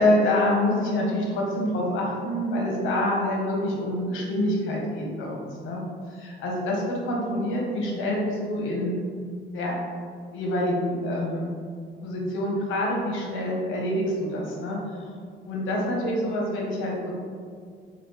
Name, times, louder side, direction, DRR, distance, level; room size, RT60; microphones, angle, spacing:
voice 1, 0.0-9.0 9.5-9.8 10.3-11.5 12.0-15.1 15.5-17.1, left 1 dB, 85° left, -2 dB, 0.9 m, -26 dB
4.0 x 2.5 x 3.0 m, 2.1 s
cardioid pair, 90°, 20 cm